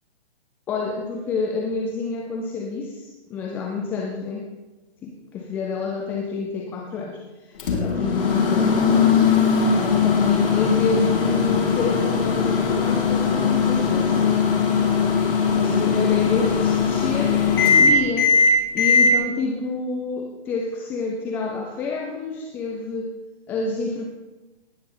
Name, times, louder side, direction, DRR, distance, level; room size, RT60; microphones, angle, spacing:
voice 1, 0.7-4.5 5.0-9.3 9.7-14.6 15.6-18.4 18.7-23.1 23.5-24.0, left 4 dB, 5° left, 1 dB, 0.4 m, -28 dB
Microwave oven, 7.6-19.1, left 5 dB, 55° left, 3.0 m, -19 dB
18.5 x 11.5 x 3.8 m, 1.1 s
hypercardioid pair, 140°, 33 cm